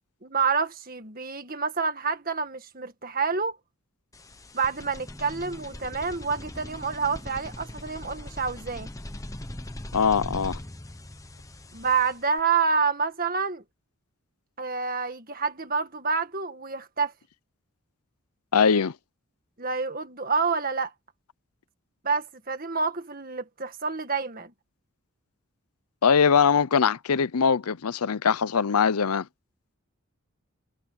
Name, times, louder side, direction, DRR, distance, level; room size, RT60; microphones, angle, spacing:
voice 1, 0.2-3.6 4.5-8.9 11.7-13.6 14.6-17.1 19.6-20.9 22.0-24.5, right 5 dB, 40° right, 1.9 m, -28 dB
sound 1, 4.1-12.4, left 1 dB, 15° left, 0.9 m, -40 dB
voice 2, 9.9-10.6 18.5-18.9 26.0-29.3, left 6 dB, 90° left, 0.6 m, -22 dB
head